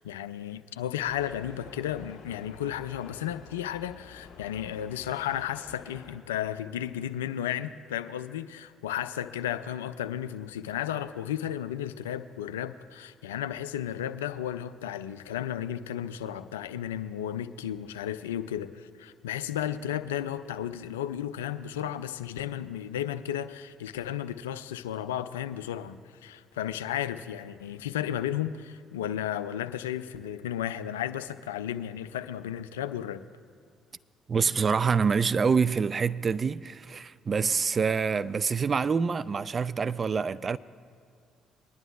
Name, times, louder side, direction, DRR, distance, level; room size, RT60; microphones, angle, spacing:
voice 1, 0.0-33.2, left 10 dB, 80° left, 0.3 m, -34 dB
sound 1, 1.0-6.2, left 6 dB, 60° left, 1.2 m, -50 dB
voice 2, 34.3-40.6, right 5 dB, 40° right, 0.3 m, -26 dB
24.0 x 10.5 x 2.3 m
figure-of-eight pair, 50°, 0 cm